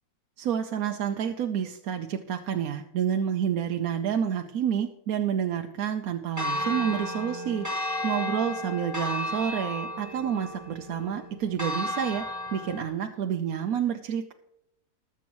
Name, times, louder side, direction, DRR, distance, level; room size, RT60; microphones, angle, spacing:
voice 1, 0.4-12.2 12.5-14.3, right 8 dB, 70° right, 5 dB, 1.1 m, -29 dB
Church bell, 6.4-12.9, left 1 dB, 10° right, 1.5 m, -33 dB
20.0 x 7.2 x 3.0 m, 0.87 s
omnidirectional pair, 1.6 m